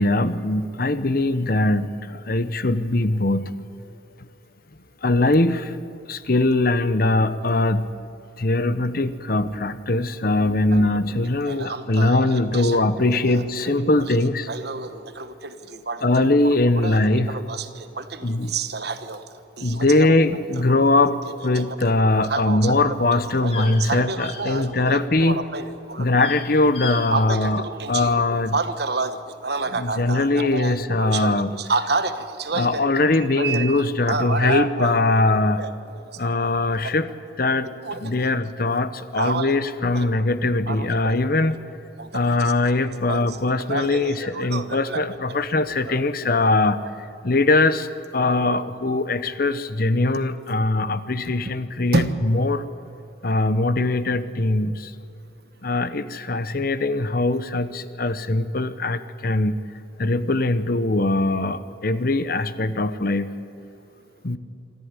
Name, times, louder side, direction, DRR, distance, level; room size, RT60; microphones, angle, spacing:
voice 1, 0.0-3.5 5.0-5.8 6.1-7.8 8.4-14.5 16.0-17.4 18.2-18.5 19.6-25.4 26.0-28.6 29.7-31.5 32.5-35.6 36.2-37.1 37.4-37.7 38.0-41.6 42.1-46.8 47.2-47.9 48.1-52.6 53.2-54.9 55.6-59.6 60.0-63.3 64.2-64.4, left 2 dB, 50° left, 13 dB, 0.9 m, -21 dB
voice 2, 11.4-13.7 14.5-16.0 16.8-19.2 19.6-20.1 20.7-20.8 21.5-21.8 22.3-22.9 23.4-26.1 27.1-28.2 28.5-33.1 33.4-34.9 35.3-36.3 36.8-37.0 37.8-38.0 39.2-39.5 39.9-40.1 40.7-41.1 42.0-42.4 43.1-43.4 43.7-45.0 45.9-46.0 46.6-46.7 51.9-52.1, right 3 dB, 55° right, 10 dB, 1.3 m, -29 dB
sound 1, 23.0-25.1 25.4-25.7 26.0-26.4 26.7-27.0 27.3-27.4, left 4 dB, 30° left, 4.2 m, -37 dB
26.0 x 14.0 x 9.7 m, 2.7 s
head